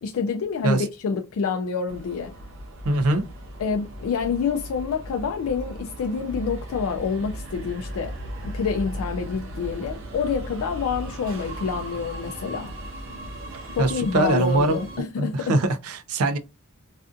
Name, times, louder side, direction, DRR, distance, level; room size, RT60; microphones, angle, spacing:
voice 1, 0.0-2.4 3.6-8.2 8.4-12.7 13.7-15.6, left 5 dB, 75° left, 0.3 m, -27 dB
Subway metro underground, 1.9-15.0, equal, 60° right, 0.8 m, -37 dB
voice 2, 2.8-3.2 13.8-14.8 15.2-16.4, right 2 dB, 85° right, 0.4 m, -22 dB
2.4 x 2.4 x 2.4 m
head